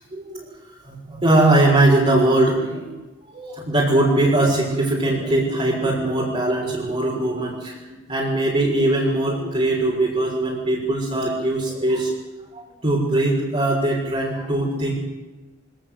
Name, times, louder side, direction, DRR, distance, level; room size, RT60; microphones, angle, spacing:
voice 1, 0.1-0.5 0.8-2.9 3.2-12.1 12.5-14.9, right 2 dB, 30° right, -5 dB, 6.4 m, -21 dB
26.0 x 19.0 x 8.1 m, 1.2 s
head